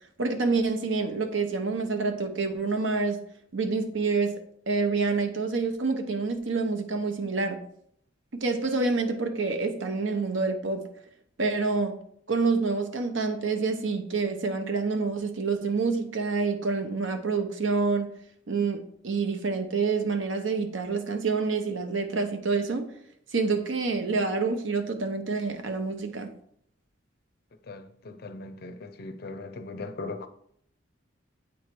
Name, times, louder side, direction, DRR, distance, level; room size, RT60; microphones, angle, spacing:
voice 1, 0.2-3.2 3.5-4.4 4.7-7.6 8.3-10.9 11.4-11.9 12.3-18.1 18.5-22.9 23.3-26.3, right 4 dB, 70° right, 0.8 m, -27 dB
voice 2, 27.7-30.3, left 3 dB, 50° left, 0.5 m, -39 dB
8.4 x 3.2 x 4.5 m
head